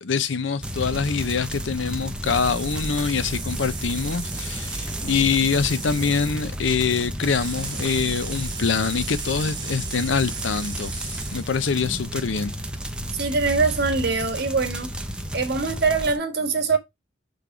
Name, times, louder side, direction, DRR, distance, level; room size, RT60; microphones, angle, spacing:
voice 1, 0.0-12.5, left 5 dB, 70° left, 0.6 m, -24 dB
sound 1, 0.6-16.2, equal, 5° right, 0.8 m, -32 dB
sound 2, 2.2-6.5 7.2-11.5, right 5 dB, 25° right, 1.6 m, -36 dB
voice 2, 13.1-14.9 15.3-16.8, right 4 dB, 60° right, 1.5 m, -23 dB
6.0 x 3.5 x 4.7 m
head